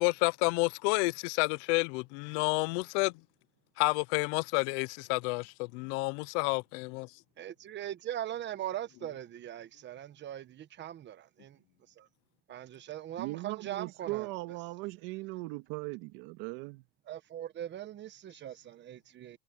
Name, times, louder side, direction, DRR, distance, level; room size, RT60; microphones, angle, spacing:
voice 1, 0.0-3.1 3.8-7.1, left 27 dB, 65° left, 0.6 m, -30 dB
voice 2, 7.4-11.6 12.0-12.1 12.5-14.3 17.1-19.4, right 12 dB, 25° right, 1.0 m, -40 dB
voice 3, 13.2-16.8, right 23 dB, 60° right, 1.9 m, -39 dB
supercardioid pair, 140°, 39 cm